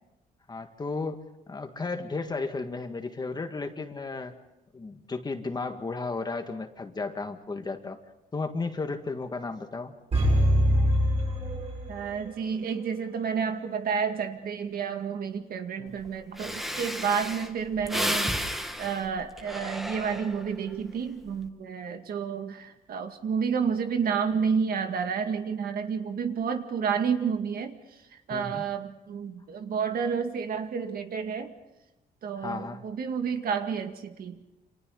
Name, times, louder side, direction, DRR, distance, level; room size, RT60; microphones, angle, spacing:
voice 1, 0.5-1.2 1.5-4.3 4.7-8.0 8.3-9.9 15.8-16.0 28.3-28.6 32.4-32.8, left 3 dB, 25° left, 6 dB, 1.8 m, -34 dB
sound 1, 10.1-12.3 12.6-12.7, equal, 40° right, 8.0 m, -23 dB
voice 2, 11.9-18.4 18.8-27.8 28.1-31.5 32.2-34.4, right 6 dB, 65° right, 6 dB, 2.0 m, -30 dB
Breathing, 16.0-16.1 16.4-20.6 21.1-21.4, equal, ahead, 1.5 m, -33 dB
29.0 x 27.0 x 4.0 m, 0.99 s
cardioid pair, 130°, 17 cm